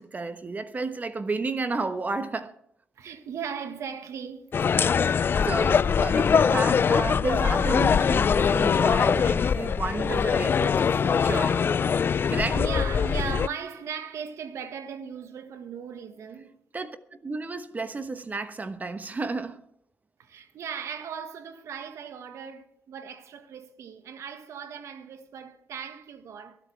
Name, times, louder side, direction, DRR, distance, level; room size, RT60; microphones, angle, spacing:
voice 1, 0.0-2.5 4.9-11.6 12.3-12.6 16.7-19.6, right 3 dB, 30° right, 1.1 m, -32 dB
voice 2, 3.0-4.5 9.3-9.7 11.3-16.5 20.2-26.6, right 7 dB, 70° right, 1.7 m, -38 dB
sound 1, 4.5-13.5, left 6 dB, 45° left, 0.4 m, -22 dB
23.5 x 8.4 x 3.4 m
cardioid pair, 70°, 5 cm